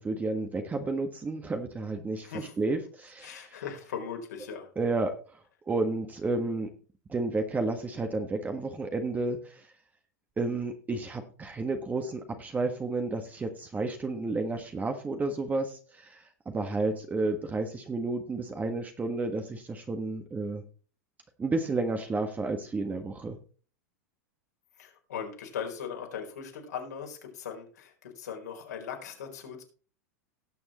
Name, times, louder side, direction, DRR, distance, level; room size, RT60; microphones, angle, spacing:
voice 1, 0.0-2.3 2.6-3.4 4.8-5.1 5.7-6.7 7.1-9.7 10.4-20.6 21.4-23.4, right 3 dB, 20° right, 6 dB, 1.5 m, -31 dB
voice 2, 2.2-2.5 3.2-4.7 24.8-29.6, left 7 dB, 80° left, 2 dB, 4.2 m, -39 dB
18.5 x 7.0 x 3.0 m, 0.38 s
hypercardioid pair, 100°, 9 cm